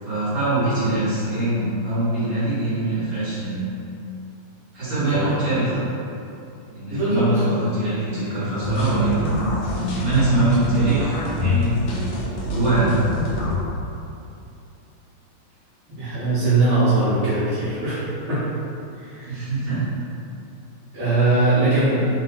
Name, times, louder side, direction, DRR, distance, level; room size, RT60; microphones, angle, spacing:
voice 1, 0.0-3.7 4.7-5.9 6.7-9.5 10.0-11.8 12.5-12.9 19.3-19.8, right 2 dB, 65° right, -16 dB, 2.3 m, -23 dB
voice 2, 5.0-5.5 6.9-7.4 16.0-18.5 18.9-19.5 20.9-22.1, right 2 dB, 80° right, -15 dB, 2.1 m, -21 dB
sound 1, 8.6-13.6, equal, 70° left, 1.2 m, -25 dB
4.5 x 2.2 x 4.1 m, 2.7 s
omnidirectional pair, 2.4 m